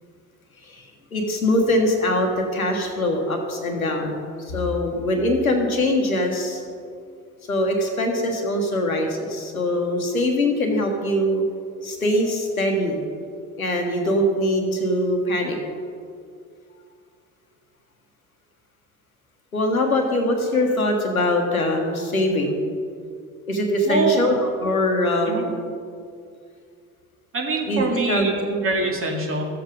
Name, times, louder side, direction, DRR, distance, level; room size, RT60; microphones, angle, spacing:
voice 1, 0.6-6.6 7.5-11.4 11.8-13.0 13.6-15.6 19.5-22.6 23.5-25.5 27.7-28.6, left 1 dB, 90° left, 3 dB, 1.4 m, -22 dB
voice 2, 23.9-24.2 25.3-25.4 27.3-28.3 28.6-29.4, right 2 dB, 30° right, 0 dB, 2.2 m, -24 dB
13.5 x 7.8 x 5.2 m, 2.3 s
figure-of-eight pair, 60°, 41 cm